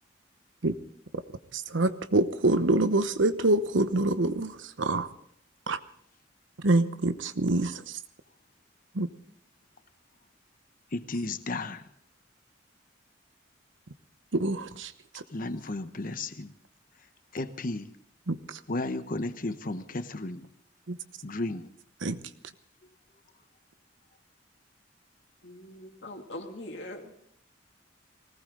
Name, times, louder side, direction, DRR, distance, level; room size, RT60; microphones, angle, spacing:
voice 1, 1.5-5.1 5.7-5.8 6.6-8.0 8.9-9.1 14.3-15.2 18.3-18.6 20.9-21.0 22.0-22.2, right 2 dB, 90° right, 12 dB, 1.0 m, -26 dB
voice 2, 10.9-11.8 15.3-16.5 17.3-17.9 18.7-20.5 21.2-21.7, left 2 dB, 45° left, 11 dB, 1.0 m, -33 dB
voice 3, 25.4-27.1, left 1 dB, 65° left, 3 dB, 2.6 m, -42 dB
20.0 x 18.5 x 3.9 m, 0.67 s
head